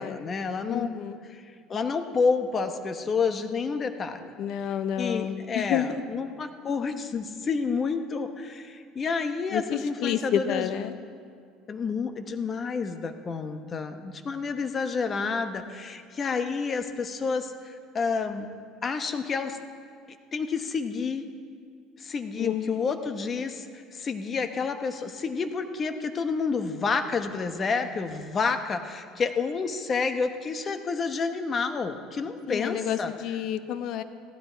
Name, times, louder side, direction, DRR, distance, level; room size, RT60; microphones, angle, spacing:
voice 1, 0.0-0.9 1.3-1.4 1.7-4.3 5.0-10.7 11.7-18.5 18.8-19.6 20.3-21.2 22.0-23.7 23.9-33.1, left 5 dB, 30° left, 8 dB, 0.9 m, -29 dB
voice 2, 0.7-1.2 4.4-6.0 9.5-11.0 22.4-22.9 32.5-34.0, left 9 dB, 60° left, 11 dB, 0.7 m, -30 dB
15.5 x 12.0 x 4.5 m, 2.2 s
cardioid pair, 120°, 0 cm